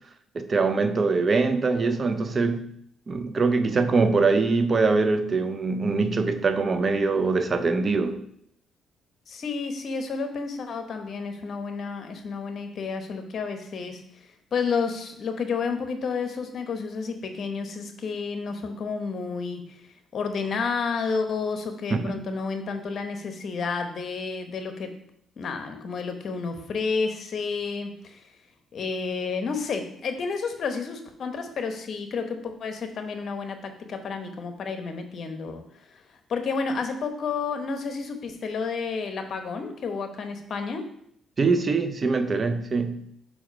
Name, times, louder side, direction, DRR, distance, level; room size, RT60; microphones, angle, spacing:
voice 1, 0.3-2.7 3.1-8.2 21.9-22.2 41.4-43.0, right 4 dB, 40° right, 0.6 m, -23 dB
voice 2, 9.3-14.0 14.5-19.8 20.1-24.9 25.4-28.2 28.7-35.6 35.9-36.0 36.3-40.9, left 5 dB, 55° left, 1.0 m, -31 dB
4.9 x 4.8 x 5.2 m
cardioid pair, 90°, 0 cm